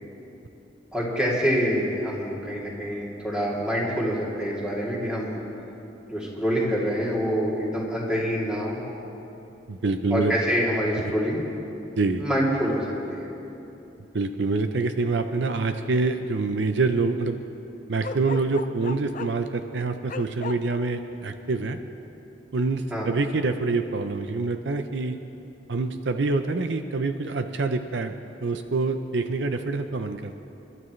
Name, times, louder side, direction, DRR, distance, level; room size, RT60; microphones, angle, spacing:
voice 1, 0.9-5.3 6.1-8.8 10.1-11.4 12.2-13.3 22.9-23.1, equal, 5° right, -6 dB, 2.9 m, -26 dB
voice 2, 9.7-10.3 12.0-12.2 14.1-17.4 17.9-21.8 22.5-25.2 25.7-28.1 28.4-30.3, right 3 dB, 70° right, 8 dB, 0.6 m, -26 dB
Bark, 18.0-19.4 20.1-20.6, left 4 dB, 45° left, 0.5 m, -34 dB
29.0 x 12.5 x 3.2 m, 3.0 s
head